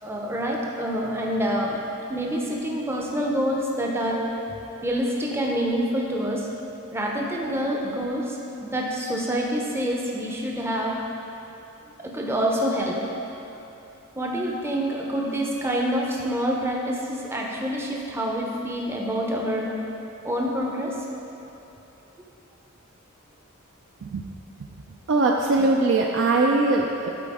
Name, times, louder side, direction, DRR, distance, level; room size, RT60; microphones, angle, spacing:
voice 1, 0.0-1.8 2.1-4.2 4.8-6.5 6.9-11.0 12.0-12.9 14.2-19.7 20.2-21.0, equal, 10° right, -2 dB, 0.6 m, -27 dB
voice 2, 25.1-27.1, right 2 dB, 55° right, -1 dB, 0.4 m, -21 dB
11.5 x 4.2 x 3.6 m, 2.9 s
head